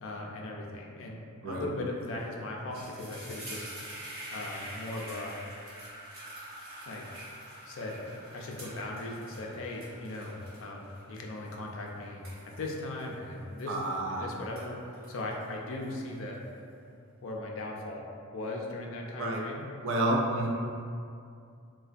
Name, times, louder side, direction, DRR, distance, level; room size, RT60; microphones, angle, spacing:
voice 1, 0.0-3.7 4.3-5.4 6.9-7.0 7.6-13.8 14.1-16.4 17.2-18.0 18.3-19.6, left 2 dB, 60° left, -1 dB, 0.4 m, -38 dB
sound 1, 2.0-2.2 2.5-14.1 14.4-16.3, right 1 dB, 45° right, 1.4 m, -46 dB
voice 2, 13.7-14.2 19.2-19.4 19.8-20.5, right 1 dB, 60° right, -1 dB, 0.3 m, -29 dB
3.3 x 2.2 x 2.4 m, 2.4 s
head